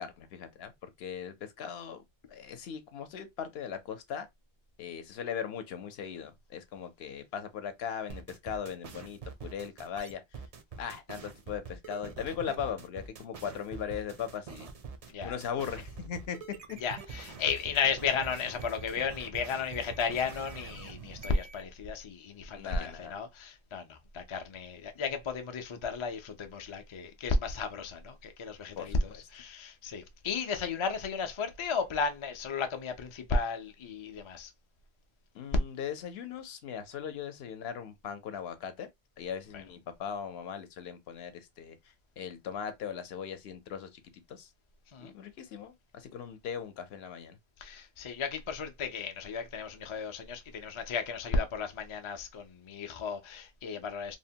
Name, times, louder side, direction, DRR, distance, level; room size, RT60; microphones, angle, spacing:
voice 1, 0.0-2.0 2.3-4.3 4.8-10.4 10.8-14.7 15.2-16.4 16.7-16.8 22.5-23.1 28.8-29.2 35.3-38.9 39.2-44.0 44.3-44.5 45.0-47.4, left 8 dB, 70° left, 0.8 m, -39 dB
sound 1, 8.1-21.6, right 5 dB, 50° right, 0.4 m, -45 dB
voice 2, 16.8-34.5 39.5-39.6 44.9-45.1 47.6-54.2, left 4 dB, 55° left, 0.3 m, -34 dB
2.8 x 2.1 x 2.7 m
omnidirectional pair, 1.1 m